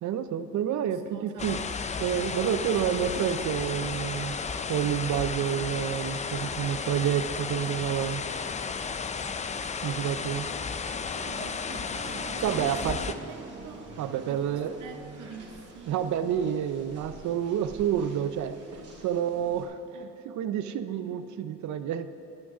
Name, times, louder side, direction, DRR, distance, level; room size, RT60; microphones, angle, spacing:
voice 1, 0.0-1.6 2.0-4.4 4.7-8.2 9.8-10.5 12.4-13.0 14.0-14.8 15.9-18.6 19.0-22.2, right 9 dB, 70° right, 11 dB, 0.5 m, -29 dB
voice 2, 0.8-1.6 11.1-13.9 14.3-16.1 19.9-20.2, right 6 dB, 85° right, 6 dB, 0.9 m, -46 dB
sound 1, 1.4-13.1, left 5 dB, 25° left, 0.4 m, -33 dB
sound 2, 11.9-19.7, right 2 dB, 55° right, 2.1 m, -45 dB
9.7 x 6.2 x 6.1 m, 2.7 s
cardioid pair, 90°, 30 cm